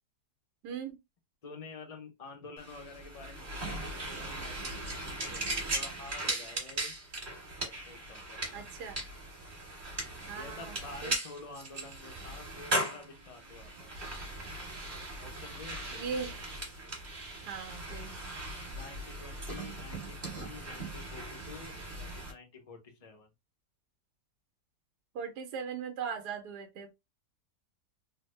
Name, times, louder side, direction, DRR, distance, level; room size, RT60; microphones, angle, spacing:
voice 1, 0.6-1.0 8.5-9.0 10.3-10.7 11.0-11.1 15.9-16.5 17.5-18.2 25.1-26.9, right 6 dB, 75° right, 1.3 m, -39 dB
voice 2, 1.4-4.7 5.0-6.9 7.6-8.6 9.9-13.9 15.2-16.0 18.6-23.3, left 3 dB, 65° left, 0.3 m, -49 dB
sound 1, 2.6-22.3, right 2 dB, 30° right, 1.5 m, -39 dB
sound 2, 13.5-18.7, right 2 dB, 45° right, 1.4 m, -50 dB
3.3 x 2.1 x 3.1 m
omnidirectional pair, 1.8 m